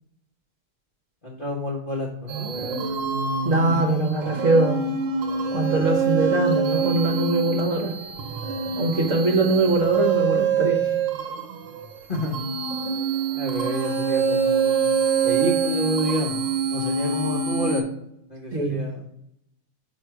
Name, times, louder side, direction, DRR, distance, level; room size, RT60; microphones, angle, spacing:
voice 1, 1.2-2.8 12.1-12.4 13.3-16.4 16.7-17.8 18.3-19.1, equal, 40° left, -3 dB, 0.8 m, -29 dB
sound 1, 2.3-17.8, right 5 dB, 80° right, 1.5 m, -25 dB
voice 2, 3.4-4.8 5.5-7.9 8.8-10.9 18.5-18.8, right 2 dB, 50° right, 1 dB, 1.1 m, -22 dB
4.9 x 4.2 x 4.6 m, 0.78 s
omnidirectional pair, 2.0 m